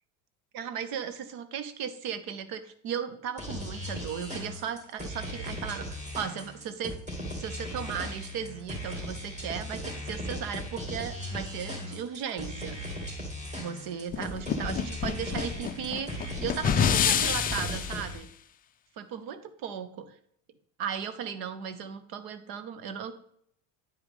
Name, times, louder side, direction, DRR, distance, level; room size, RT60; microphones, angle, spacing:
voice 1, 0.5-7.0 7.4-12.8 13.6-18.3 19.0-20.1 20.8-23.1, right 8 dB, 65° right, 12 dB, 0.9 m, -36 dB
sound 1, 3.4-18.1, equal, 15° right, 2.4 m, -37 dB
sound 2, 14.1-18.0, left 8 dB, 25° left, 0.4 m, -28 dB
9.0 x 4.8 x 3.5 m, 0.65 s
supercardioid pair, 100°, 40 cm